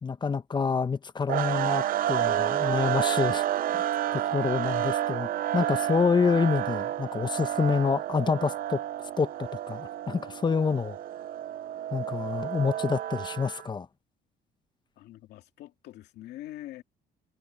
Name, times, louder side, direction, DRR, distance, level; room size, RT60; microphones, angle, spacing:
voice 1, 0.0-3.4 4.1-8.8 9.2-11.0 11.9-13.9, left 5 dB, 25° left, 1.1 m, -27 dB
sound 1, 1.3-13.7, right 12 dB, 55° right, 0.7 m, -30 dB
Keyboard (musical), 2.3-5.2, right 4 dB, 25° right, 1.7 m, -43 dB
voice 2, 15.0-16.8, left 14 dB, 75° left, 2.7 m, -44 dB
cardioid pair, 110°, 17 cm